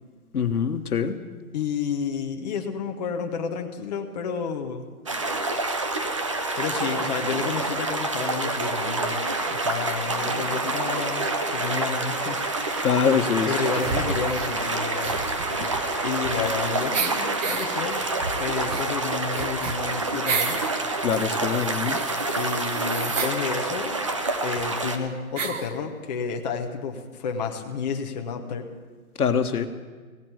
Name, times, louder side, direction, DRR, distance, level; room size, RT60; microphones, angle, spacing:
voice 1, 0.3-1.2 12.8-13.5 21.0-22.0 29.2-29.7, left 7 dB, 80° left, 8 dB, 1.3 m, -23 dB
voice 2, 1.5-4.8 6.6-12.4 13.5-15.2 16.0-18.0 18.4-20.6 22.3-24.0 24.4-28.7, left 6 dB, 30° left, 3 dB, 0.9 m, -30 dB
sound 1, 5.1-25.0, right 2 dB, 20° right, 0.5 m, -28 dB
sound 2, 8.5-18.9, right 3 dB, 85° right, 2.1 m, -38 dB
sound 3, 13.7-14.6 15.0-16.6 16.9-17.7 18.2-20.7 21.1-23.4 24.3-24.4 24.6-24.7 25.4-25.7, right 5 dB, 55° right, 1.4 m, -32 dB
16.5 x 7.7 x 9.0 m, 1.4 s
hypercardioid pair, 155°, 44 cm